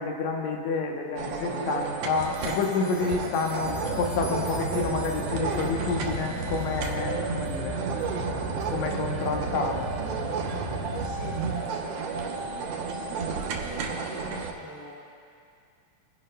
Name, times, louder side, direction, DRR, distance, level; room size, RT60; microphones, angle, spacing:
voice 1, 0.0-7.8 8.7-9.9 12.4-12.7, left 4 dB, 70° left, 1 dB, 2.1 m, -29 dB
sound 1, 1.2-14.5, right 5 dB, 65° right, 1.8 m, -32 dB
sound 2, 2.2-7.0 7.5-7.6 8.0-8.1 8.6-8.7, left 2 dB, 50° left, 1.1 m, -47 dB
sound 3, 3.6-11.6, right 1 dB, 45° right, 2.8 m, -35 dB
voice 2, 8.2-8.5 11.0-11.4 11.7-12.0 12.9-13.3 13.7-15.0, left 1 dB, 5° left, -6 dB, 2.2 m, -45 dB
23.5 x 10.5 x 2.2 m, 2.4 s
omnidirectional pair, 3.4 m